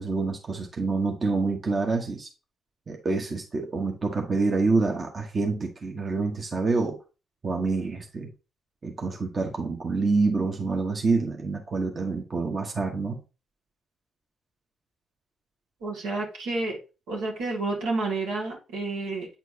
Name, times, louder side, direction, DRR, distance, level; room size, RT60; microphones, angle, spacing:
voice 1, 0.0-2.3 2.9-7.0 7.4-8.3 8.8-13.2, right 3 dB, 45° right, 1 dB, 1.2 m, -27 dB
voice 2, 15.8-16.8 17.1-19.3, right 3 dB, 85° right, -3 dB, 2.1 m, -30 dB
8.4 x 4.5 x 2.8 m, 0.31 s
supercardioid pair, 50°, 0 cm